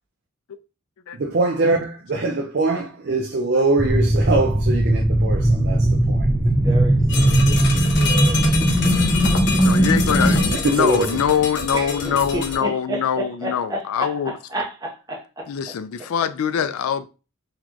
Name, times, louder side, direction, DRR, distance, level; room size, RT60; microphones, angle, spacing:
voice 1, 1.1-6.3 6.7-6.8 10.5-11.2, right 3 dB, 50° right, 0.5 m, -23 dB
sound 1, 3.8-10.5, right 1 dB, 5° left, 0.5 m, -18 dB
voice 2, 6.6-9.5 10.1-10.5 11.7-15.5, right 1 dB, 15° right, 0.8 m, -32 dB
sound 2, 7.1-12.6, left 4 dB, 55° left, 0.7 m, -27 dB
voice 3, 9.6-14.3 15.5-17.1, left 8 dB, 75° left, 0.4 m, -23 dB
4.0 x 2.9 x 2.9 m
head